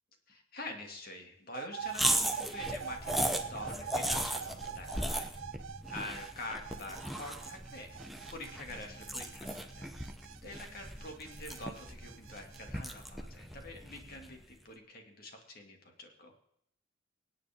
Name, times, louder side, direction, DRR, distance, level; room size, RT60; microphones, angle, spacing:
voice 1, 0.3-5.3 5.9-7.9 8.3-9.9 10.4-16.3, left 2 dB, 50° left, 2 dB, 2.4 m, -46 dB
sound 1, 1.5-12.7, right 8 dB, 80° right, 0.5 m, -45 dB
sound 2, 1.9-14.4, right 1 dB, ahead, 0.8 m, -37 dB
25.5 x 8.8 x 3.7 m, 0.74 s
head